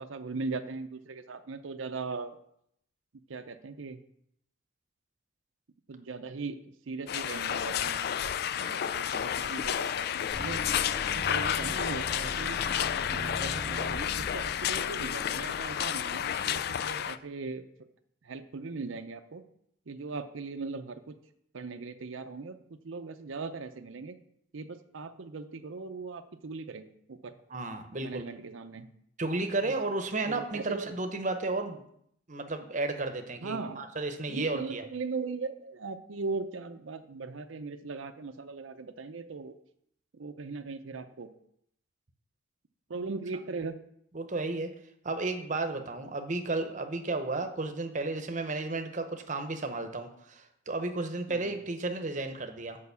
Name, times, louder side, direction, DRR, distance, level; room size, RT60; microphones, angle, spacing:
voice 1, 0.0-2.4 3.3-4.0 5.9-10.1 10.4-10.6 11.2-12.6 13.1-17.7 18.2-19.4 19.9-21.1 21.5-24.2 24.5-27.3 28.0-28.9 29.6-29.7 30.2-30.9 33.4-33.8 34.3-39.5 40.1-41.3 42.9-43.8 51.3-51.6, right 4 dB, 80° right, 8 dB, 0.6 m, -39 dB
sound 1, 7.1-17.2, left 9 dB, 50° left, 0.3 m, -31 dB
sound 2, 10.3-16.3, equal, 25° left, 2.7 m, -41 dB
voice 2, 27.5-28.2 29.2-31.8 32.3-34.8 44.1-44.7 45.0-52.8, right 2 dB, 40° right, 6 dB, 0.8 m, -33 dB
6.7 x 5.2 x 6.9 m, 0.72 s
head